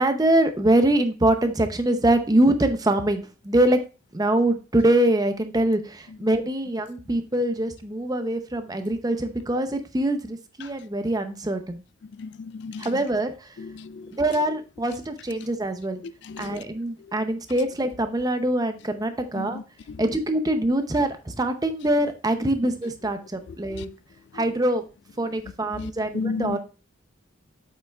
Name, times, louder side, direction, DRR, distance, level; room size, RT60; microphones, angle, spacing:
voice 1, 0.0-3.8 4.1-11.8 12.8-13.5 14.2-16.0 16.4-19.6 20.0-23.9 24.3-24.8 25.2-26.6, right 1 dB, 20° right, 0.7 m, -24 dB
voice 2, 12.2-12.9 13.8-14.1 16.3-16.6 19.4-19.6 23.7-23.8 25.8-26.6, left 4 dB, 60° left, 0.3 m, -32 dB
7.7 x 5.4 x 2.3 m
head